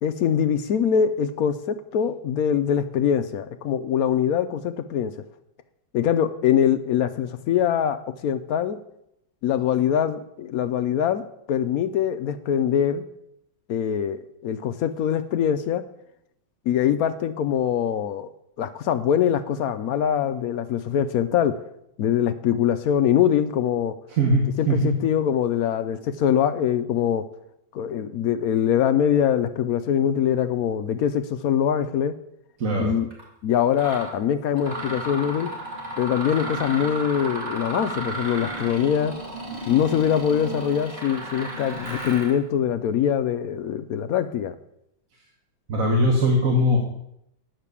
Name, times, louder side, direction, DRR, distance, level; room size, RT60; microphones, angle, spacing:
voice 1, 0.0-5.1 5.9-8.8 9.4-11.2 11.5-13.0 13.7-15.8 16.7-18.3 18.6-21.6 22.0-23.9 24.6-27.2 27.7-32.1 32.8-33.1 33.4-35.5 36.0-39.2 39.6-44.5, left 9 dB, 80° left, 10 dB, 0.8 m, -23 dB
voice 2, 24.1-24.9 32.6-33.0 45.7-46.8, equal, 45° right, 0 dB, 1.6 m, -20 dB
Mechanisms, 33.1-33.2 33.7-34.1 34.6-42.4, right 2 dB, 20° right, 2.4 m, -33 dB
8.9 x 6.6 x 8.3 m, 0.79 s
omnidirectional pair, 2.2 m